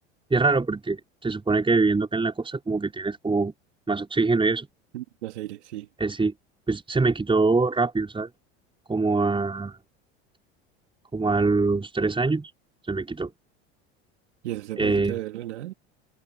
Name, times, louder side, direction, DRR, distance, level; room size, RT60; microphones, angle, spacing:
voice 1, 0.3-3.5 3.9-4.7 6.0-6.3 6.7-8.3 8.9-9.8 11.1-12.5 12.9-13.3 14.8-15.2, right 3 dB, 15° right, 5.7 m, -24 dB
voice 2, 4.9-5.9 14.4-15.7, right 14 dB, 85° right, 3.7 m, -34 dB
hypercardioid pair, 85°, 34 cm